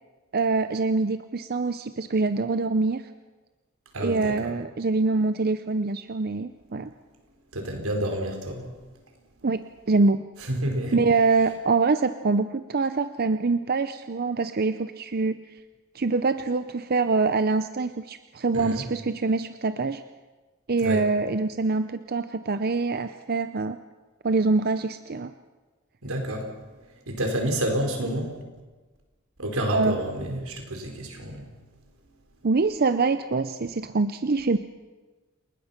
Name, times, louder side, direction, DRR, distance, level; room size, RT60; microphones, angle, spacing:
voice 1, 0.3-3.0 4.0-6.9 9.4-9.6 9.9-10.2 10.9-15.4 15.9-20.0 20.7-23.8 24.2-25.3 29.7-30.0 32.4-34.6, right 3 dB, 45° right, 11 dB, 0.6 m, -24 dB
voice 2, 3.9-4.5 7.5-8.9 10.4-11.0 18.5-18.9 20.8-21.1 26.0-26.5 26.8-28.4 29.4-31.5, right 1 dB, 85° right, 3 dB, 4.9 m, -29 dB
29.5 x 20.0 x 5.9 m, 1.3 s
head